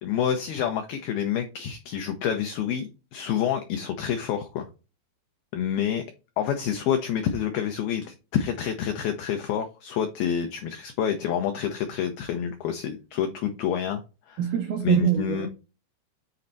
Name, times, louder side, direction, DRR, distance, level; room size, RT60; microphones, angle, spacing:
voice 1, 0.0-4.7 5.5-6.0 6.4-14.0 14.3-14.4 14.8-15.5, left 9 dB, 85° left, 2.1 m, -28 dB
voice 2, 14.4-15.5, right 9 dB, 80° right, 2.1 m, -24 dB
7.2 x 4.4 x 3.9 m
omnidirectional pair, 5.3 m